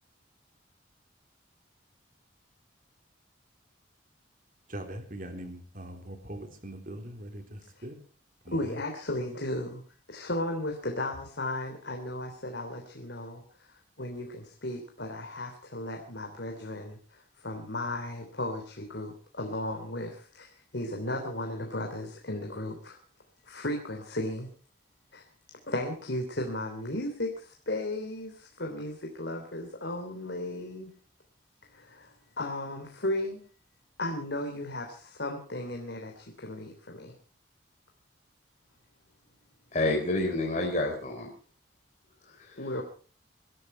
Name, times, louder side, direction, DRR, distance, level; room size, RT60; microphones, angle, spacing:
voice 1, 4.7-8.0 8.5-8.8, right 1 dB, 45° right, 5 dB, 3.5 m, -41 dB
voice 2, 8.5-9.8 10.1-23.0 23.4-24.5 25.1-25.2 25.7-30.9 31.7-33.4 34.0-37.1 42.6-42.8, left 1 dB, 65° left, 3 dB, 3.2 m, -35 dB
voice 3, 39.7-41.3 42.4-42.6, left 2 dB, 40° left, 1 dB, 3.7 m, -28 dB
24.0 x 13.0 x 4.5 m, 0.39 s
head